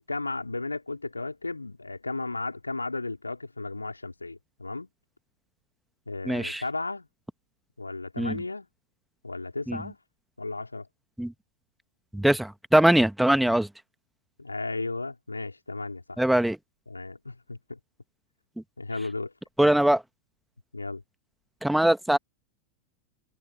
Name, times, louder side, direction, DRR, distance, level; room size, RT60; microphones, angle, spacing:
voice 1, 0.0-4.9 6.1-7.1 7.8-8.7 9.2-10.0 10.4-10.9 14.4-16.2 16.9-17.8 18.8-19.3 20.7-21.0, left 3 dB, 80° left, 4.6 m, -34 dB
voice 2, 6.2-6.6 8.2-8.4 9.7-9.8 11.2-11.3 12.1-13.7 16.2-16.6 19.6-20.0 21.6-22.2, right 1 dB, 5° right, 1.9 m, -22 dB
figure-of-eight pair, 90°, 0 cm